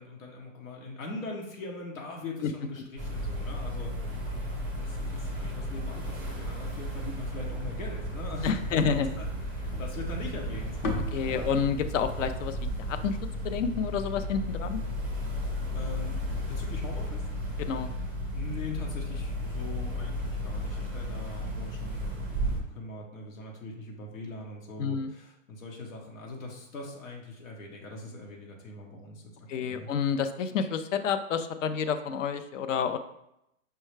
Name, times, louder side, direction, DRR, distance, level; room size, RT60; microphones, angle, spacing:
voice 1, 0.0-4.2 4.8-10.8 11.3-11.5 15.7-17.3 18.3-29.9, left 2 dB, 90° left, -1 dB, 1.1 m, -41 dB
sound 1, 3.0-22.6, equal, 5° right, 0.4 m, -34 dB
voice 2, 8.4-9.1 11.1-12.6 12.9-13.2 13.4-14.8 17.6-17.9 24.8-25.1 29.5-33.0, left 6 dB, 70° left, 9 dB, 0.5 m, -29 dB
sound 2, 9.7-14.0, left 3 dB, 40° left, 0.8 m, -38 dB
5.5 x 2.3 x 3.2 m, 0.81 s
hypercardioid pair, 145°, 39 cm